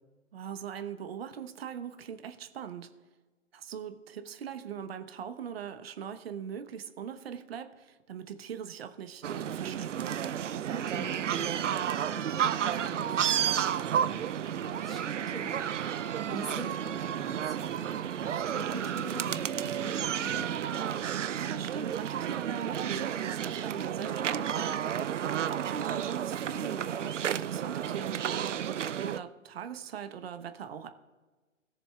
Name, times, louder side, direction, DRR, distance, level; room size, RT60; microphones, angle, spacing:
voice 1, 0.3-2.9 3.5-10.2 16.2-16.5 21.3-24.8 25.4-30.9, right 8 dB, 50° right, 9 dB, 1.0 m, -40 dB
sound 1, 9.2-29.2, right 9 dB, 65° right, 0.6 m, -32 dB
voice 2, 10.6-20.6, equal, ahead, -2 dB, 1.8 m, -45 dB
20.5 x 7.0 x 2.3 m, 1.3 s
figure-of-eight pair, 130°, 39 cm